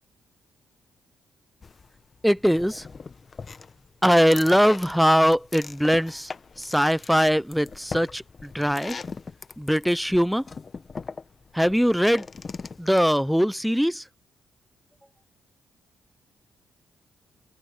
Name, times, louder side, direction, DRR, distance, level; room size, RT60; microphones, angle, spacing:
sound 1, 1.6-13.0, left 4 dB, 40° left, 1.0 m, -40 dB
voice 1, 2.2-2.9 4.0-6.3 6.6-9.0 9.6-10.4 11.5-12.3 12.8-14.0, equal, ahead, 0.6 m, -21 dB
open air
supercardioid pair, 60°, 0 cm